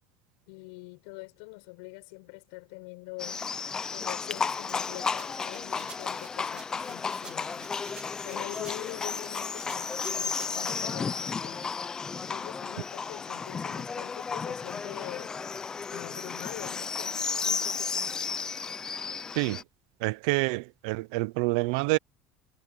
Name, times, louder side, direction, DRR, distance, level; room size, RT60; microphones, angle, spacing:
voice 1, 0.5-3.4 3.9-7.7 8.2-11.7 12.2-15.3 15.8-17.1 17.4-18.2, left 29 dB, 80° left, 7.7 m, -44 dB
Livestock farm animals working animals, 3.2-19.6, left 5 dB, 20° left, 0.9 m, -33 dB
sound 1, 5.2-10.8, right 6 dB, 25° right, 2.9 m, -51 dB
voice 2, 20.0-22.0, right 24 dB, 75° right, 0.7 m, -27 dB
cardioid pair, 140°, 3 cm